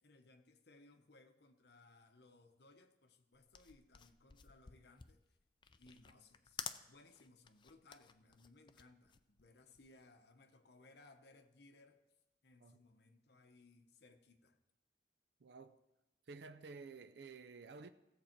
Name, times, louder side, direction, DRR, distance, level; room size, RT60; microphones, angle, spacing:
voice 1, 0.0-5.2 5.8-12.0 12.4-14.6, left 2 dB, 60° left, 0.9 m, -64 dB
sound 1, 3.4-10.0, left 7 dB, 25° left, 0.4 m, -52 dB
voice 2, 15.4-15.8 16.3-17.9, right 4 dB, 65° right, 0.5 m, -53 dB
16.0 x 7.5 x 4.5 m
head